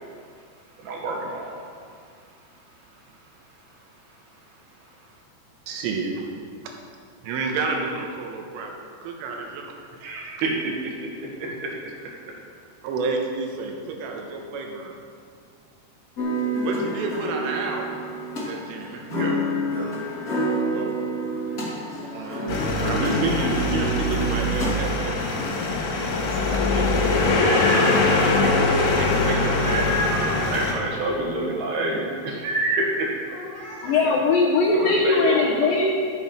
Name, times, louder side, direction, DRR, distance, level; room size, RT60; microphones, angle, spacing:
voice 1, 0.8-1.6 10.0-11.7 19.1-19.4 19.6-19.9 30.5-33.1 33.8-34.2 34.7-35.5, right 2 dB, 65° right, -2 dB, 3.2 m, -28 dB
voice 2, 5.7-6.3 7.2-10.1 12.8-15.0 16.6-18.0 18.4-19.1 20.7-21.0 22.1-25.2 26.4-27.7 28.3-30.3, right 4 dB, 85° right, 1 dB, 3.8 m, -30 dB
sound 1, 16.2-25.4, right 1 dB, 35° left, 1.5 m, -29 dB
sound 2, 22.5-30.7, left 3 dB, 65° left, 2.3 m, -22 dB
sound 3, 27.0-28.1 29.5-30.5 33.3-34.0, equal, 45° right, 1.6 m, -29 dB
voice 3, 33.8-35.8, left 4 dB, 80° left, -2 dB, 2.0 m, -20 dB
12.5 x 8.1 x 5.6 m, 2.2 s
omnidirectional pair, 5.6 m